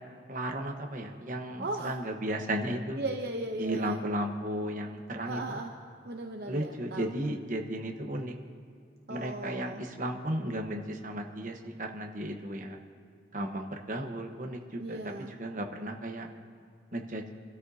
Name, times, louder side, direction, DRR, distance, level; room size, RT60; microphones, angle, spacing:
voice 1, 0.3-3.0 3.6-5.6 6.5-8.3 9.1-12.8 13.3-15.1 15.4-16.3 16.9-17.2, right 1 dB, 45° right, 3 dB, 1.2 m, -34 dB
voice 2, 1.6-2.0 3.0-4.0 5.2-5.7 6.0-7.1 9.1-9.8 14.8-15.3, right 2 dB, 60° right, 2 dB, 0.7 m, -37 dB
25.0 x 13.0 x 2.8 m, 2.4 s
head